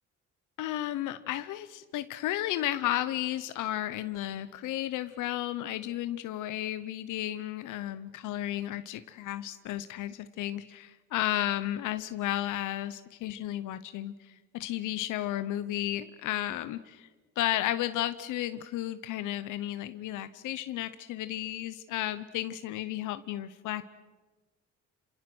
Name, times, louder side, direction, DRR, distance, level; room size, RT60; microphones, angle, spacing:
voice 1, 0.6-17.1 17.4-23.8, left 13 dB, 90° left, 12 dB, 0.8 m, -33 dB
27.5 x 26.0 x 6.2 m, 1.3 s
cardioid pair, 90°, 30 cm